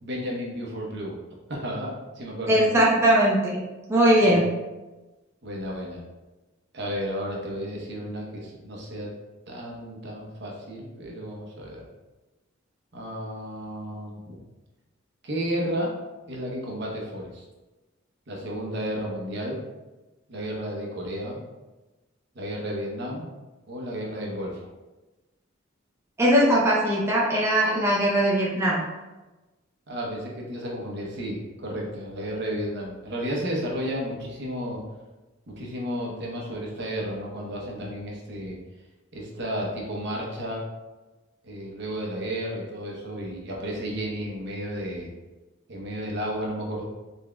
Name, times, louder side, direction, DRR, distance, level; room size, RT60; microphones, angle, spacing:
voice 1, 0.0-1.2 1.5-2.9 4.2-4.5 5.4-6.0 6.7-9.1 9.5-11.8 12.9-14.4 15.2-15.9 16.3-17.4 18.3-19.6 20.3-21.4 22.3-23.3 23.7-24.6 29.9-34.8 35.5-38.6 39.1-40.7 41.4-45.1 45.7-46.8, equal, 60° right, -2 dB, 0.8 m, -32 dB
voice 2, 2.5-3.6 3.9-4.5 26.2-28.8, right 1 dB, 15° right, -6 dB, 0.5 m, -20 dB
4.1 x 3.5 x 2.2 m, 1.1 s
head